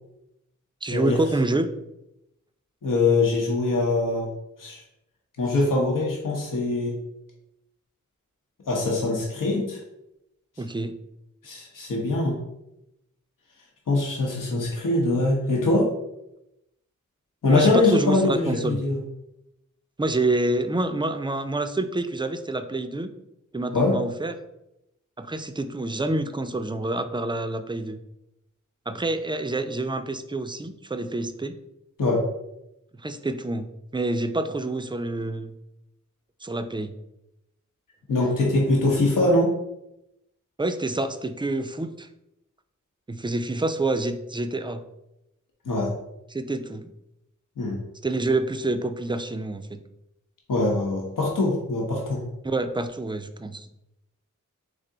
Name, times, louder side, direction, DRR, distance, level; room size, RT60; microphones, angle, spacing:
voice 1, 0.8-1.7 10.6-11.0 17.5-18.8 20.0-23.1 23.5-24.3 25.2-28.0 28.9-31.5 33.0-35.5 36.4-36.9 40.6-42.1 43.1-44.8 46.3-46.9 48.0-49.8 52.4-53.7, right 2 dB, 15° right, 9 dB, 0.3 m, -27 dB
voice 2, 2.8-4.3 4.6-4.8 5.4-7.0 8.7-9.8 11.4-12.4 13.9-15.9 17.4-19.0 23.7-24.0 32.0-32.2 38.1-39.5 45.6-45.9 47.6-47.8 50.5-52.2, left 2 dB, 90° left, -2 dB, 0.9 m, -23 dB
3.7 x 3.3 x 3.8 m, 0.87 s
cardioid pair, 55°, 32 cm